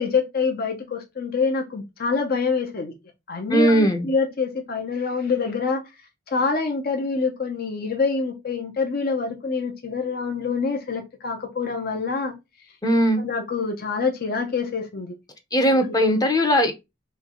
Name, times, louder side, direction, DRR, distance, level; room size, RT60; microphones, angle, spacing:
voice 1, 0.0-2.9 3.3-5.8 6.3-12.3 13.2-15.1 15.8-16.1, left 4 dB, 55° left, 0.8 m, -26 dB
voice 2, 3.5-4.1 12.8-13.2 15.5-16.7, equal, 20° left, 0.7 m, -19 dB
3.3 x 3.2 x 3.7 m
head